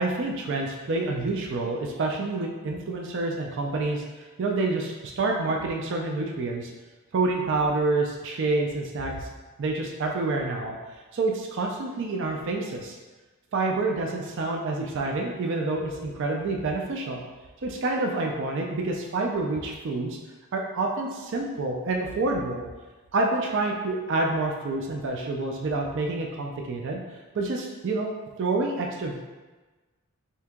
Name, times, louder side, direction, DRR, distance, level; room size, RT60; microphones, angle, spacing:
voice 1, 0.0-6.7 7.1-9.3 9.6-10.8 11.1-13.0 13.5-17.2 17.6-20.2 20.5-22.6 23.1-27.0 27.3-28.1 28.4-29.2, right 2 dB, 55° right, 1 dB, 0.4 m, -28 dB
3.5 x 2.8 x 3.5 m, 1.3 s
head